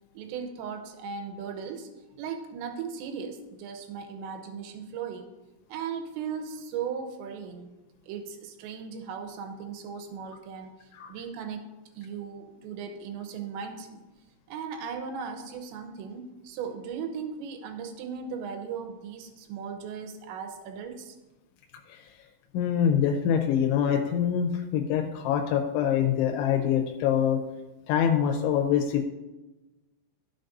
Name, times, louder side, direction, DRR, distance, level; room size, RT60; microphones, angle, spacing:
voice 1, 0.1-1.9 2.2-5.3 5.7-7.7 8.0-11.6 12.0-14.0 14.5-21.2, right 6 dB, 80° right, 6 dB, 3.1 m, -37 dB
voice 2, 22.5-27.4 27.9-29.1, left 8 dB, 90° left, 4 dB, 3.1 m, -25 dB
14.0 x 6.6 x 2.6 m, 1.1 s
omnidirectional pair, 5.3 m